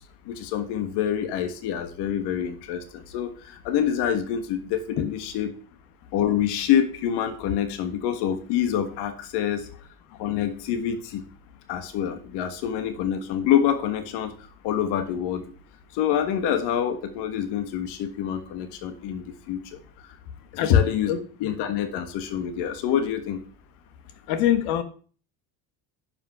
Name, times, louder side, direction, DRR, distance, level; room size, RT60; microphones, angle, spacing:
voice 1, 0.3-5.5 6.1-9.7 10.2-11.2 11.7-14.3 14.6-15.4 15.9-19.8 20.6-21.1 21.4-23.4, left 9 dB, 65° left, 1.5 m, -26 dB
voice 2, 20.6-21.5 24.3-24.8, left 9 dB, 90° left, 1.5 m, -22 dB
10.5 x 5.5 x 6.0 m
cardioid pair, 130°, 44 cm